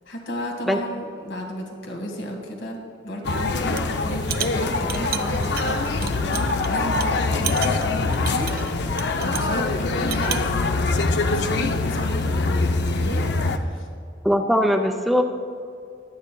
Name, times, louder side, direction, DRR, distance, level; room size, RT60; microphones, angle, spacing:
voice 1, 0.1-10.7 11.3-13.9, equal, 85° left, 2 dB, 1.7 m, -33 dB
sound 1, 3.2-13.6, left 3 dB, 60° left, 0.5 m, -24 dB
sound 2, 3.6-3.9 4.2-6.7 7.0-7.1 7.4-9.5 9.9-10.5, right 10 dB, 55° right, 0.5 m, -32 dB
voice 2, 14.2-15.2, equal, ahead, 3 dB, 0.4 m, -20 dB
22.0 x 8.5 x 2.3 m, 2.4 s
head